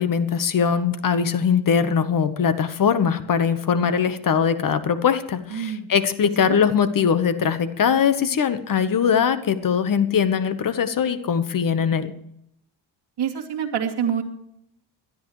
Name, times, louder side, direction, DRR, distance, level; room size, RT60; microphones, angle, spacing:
voice 1, 0.0-12.1, left 7 dB, 40° left, 12 dB, 1.2 m, -21 dB
voice 2, 5.5-5.9 6.4-6.6 13.2-14.2, right 8 dB, 55° right, -1 dB, 2.7 m, -26 dB
21.0 x 12.0 x 3.2 m, 0.75 s
cardioid pair, 135°, 48 cm